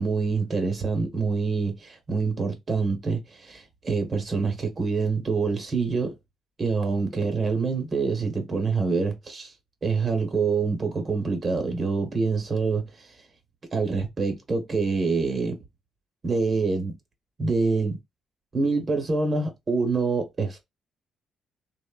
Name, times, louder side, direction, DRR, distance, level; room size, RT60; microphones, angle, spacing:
voice 1, 0.0-6.1 6.6-9.5 9.8-12.8 13.7-15.6 16.2-17.0 17.4-18.0 18.5-20.6, right 4 dB, 40° right, 0.9 m, -26 dB
3.0 x 2.1 x 2.3 m
cardioid pair, 90°, 0 cm